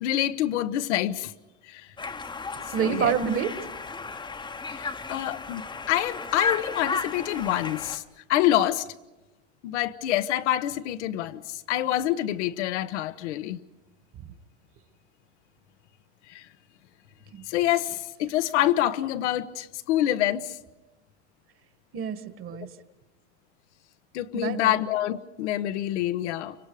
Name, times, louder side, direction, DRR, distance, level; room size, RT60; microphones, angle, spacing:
voice 1, 0.0-1.3 1.7-1.9 2.8-3.1 4.7-8.0 8.3-8.8 9.6-13.6 16.3-16.5 17.5-20.6 24.1-26.6, left 13 dB, 85° left, 1.2 m, -26 dB
Conversation, 2.0-8.0, left 4 dB, 15° left, 0.9 m, -34 dB
voice 2, 2.7-3.5 17.3-17.5 21.9-22.7 24.3-24.8, right 8 dB, 40° right, 1.8 m, -27 dB
30.0 x 25.0 x 5.0 m
supercardioid pair, 130°, 34 cm